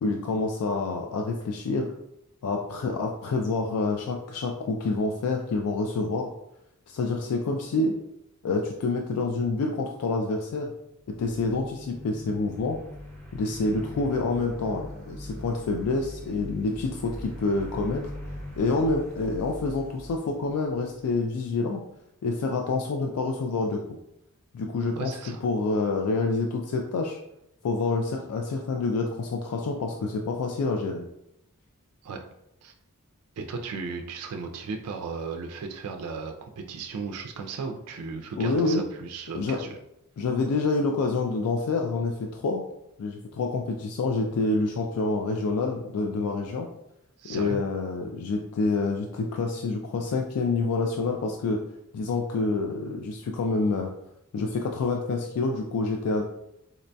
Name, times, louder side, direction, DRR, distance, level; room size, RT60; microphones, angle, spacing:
voice 1, 0.0-1.9 2.4-6.3 6.9-8.0 8.4-10.7 11.2-12.8 13.3-18.1 18.6-21.8 22.2-23.8 24.5-25.1 25.4-27.2 27.6-31.0 38.4-38.8 39.3-39.6 40.2-42.6 43.0-46.7 47.3-51.6 51.9-53.9 54.3-56.2, left 3 dB, 75° left, 2 dB, 0.3 m, -27 dB
sound 1, 11.0-21.2, equal, 10° left, 0.8 m, -42 dB
voice 2, 25.0-25.4 32.0-32.2 32.6-32.7 33.4-39.8 47.2-47.6, right 4 dB, 75° right, 3 dB, 0.3 m, -36 dB
3.9 x 2.2 x 2.6 m, 0.82 s
head